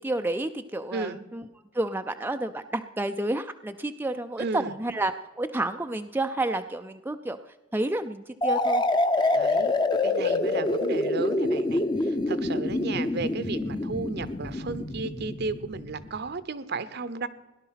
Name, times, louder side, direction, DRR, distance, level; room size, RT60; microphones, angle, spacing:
voice 1, 0.0-1.5 1.7-7.4 7.7-8.8, right 2 dB, 10° right, 7 dB, 0.4 m, -30 dB
voice 2, 4.4-4.7 9.3-9.7 10.0-17.3, right 3 dB, 55° right, 14 dB, 0.8 m, -34 dB
sound 1, 8.4-16.1, left 2 dB, 25° left, 0.8 m, -26 dB
17.5 x 11.0 x 5.8 m, 1.1 s
head